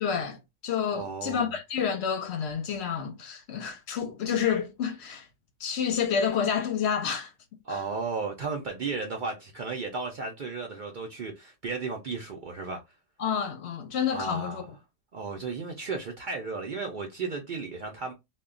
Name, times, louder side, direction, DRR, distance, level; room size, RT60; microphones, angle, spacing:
voice 1, 0.0-0.4 0.6-5.3 5.6-7.3 7.7-7.8 13.2-14.6, left 7 dB, 65° left, 0.8 m, -29 dB
voice 2, 0.9-1.5 7.7-12.8 14.1-14.7 15.1-18.1, right 4 dB, 60° right, 0.5 m, -34 dB
2.2 x 2.1 x 3.5 m
omnidirectional pair, 1.3 m